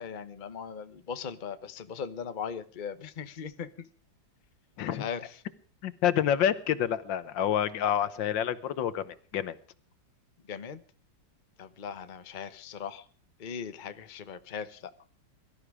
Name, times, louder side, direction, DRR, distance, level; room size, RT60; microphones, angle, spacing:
voice 1, 0.0-3.7 5.0-5.3 10.5-10.8 11.6-13.0 13.4-14.9, left 7 dB, 35° left, 11 dB, 0.9 m, -39 dB
voice 2, 5.8-9.5, left 10 dB, 80° left, 15 dB, 1.7 m, -28 dB
22.5 x 13.0 x 4.8 m, 0.43 s
omnidirectional pair, 2.0 m